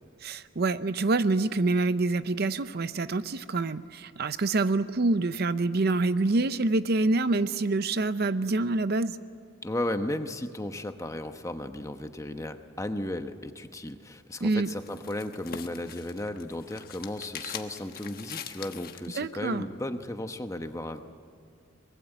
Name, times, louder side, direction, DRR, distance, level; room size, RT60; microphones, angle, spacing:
voice 1, 0.2-9.2 14.4-14.7 19.1-19.6, right 3 dB, 50° right, 13 dB, 0.6 m, -26 dB
voice 2, 9.6-21.0, left 1 dB, 15° left, 8 dB, 1.0 m, -35 dB
sound 1, 14.3-19.1, left 8 dB, 45° left, 1.3 m, -43 dB
23.5 x 21.0 x 8.9 m, 2.3 s
head